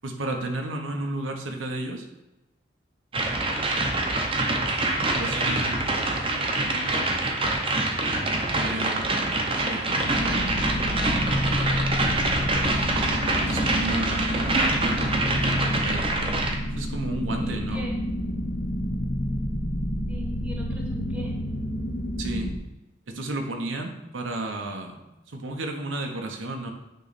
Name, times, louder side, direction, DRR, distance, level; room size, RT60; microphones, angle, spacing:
voice 1, 0.0-2.1 5.2-5.9 6.1-6.5 8.5-9.2 9.6-10.1 13.5-14.4 14.7-15.2 15.6-16.1 16.8-17.9 22.2-22.5 23.1-25.0 25.3-26.7, right 2 dB, 90° right, 3 dB, 1.0 m, -32 dB
sound 1, 3.1-16.5, right 2 dB, 30° right, 0.7 m, -25 dB
voice 2, 6.6-7.1 17.4-18.0 20.1-21.3, left 1 dB, 5° right, -1 dB, 1.0 m, -39 dB
sound 2, 10.0-22.6, equal, 50° left, 0.7 m, -29 dB
9.0 x 3.2 x 4.1 m, 0.98 s
head